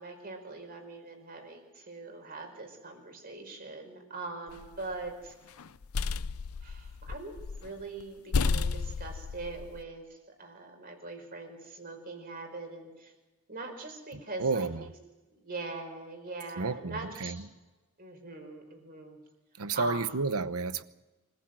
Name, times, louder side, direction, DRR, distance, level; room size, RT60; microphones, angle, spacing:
voice 1, 0.0-5.3 6.6-10.1 10.4-13.1 13.5-14.9 15.3-17.4 18.0-19.2 19.7-20.0, right 3 dB, 45° right, 4 dB, 4.9 m, -42 dB
sound 1, 4.5-5.1 5.6-7.7 8.0-8.1 8.3-9.8, left 4 dB, 80° left, 0.6 m, -32 dB
voice 2, 14.4-14.9 16.6-17.4 19.6-20.8, right 4 dB, 85° right, 13 dB, 0.9 m, -31 dB
25.0 x 15.0 x 7.7 m, 1.2 s
head